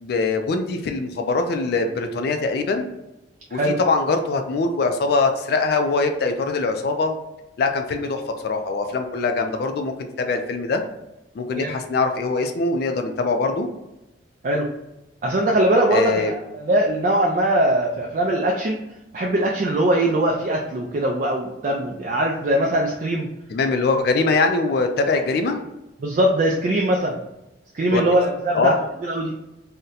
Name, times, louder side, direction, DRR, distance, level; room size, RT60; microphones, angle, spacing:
voice 1, 0.0-2.9 3.5-7.1 7.6-10.8 11.3-13.7 15.9-16.3 23.5-25.6 27.9-28.0 28.5-28.7, left 3 dB, 55° left, 6 dB, 0.3 m, -22 dB
voice 2, 15.2-18.8 19.1-23.3 26.0-27.2 27.7-28.7 29.0-29.3, right 1 dB, 45° right, -1 dB, 0.3 m, -21 dB
2.7 x 2.1 x 3.7 m, 0.94 s
head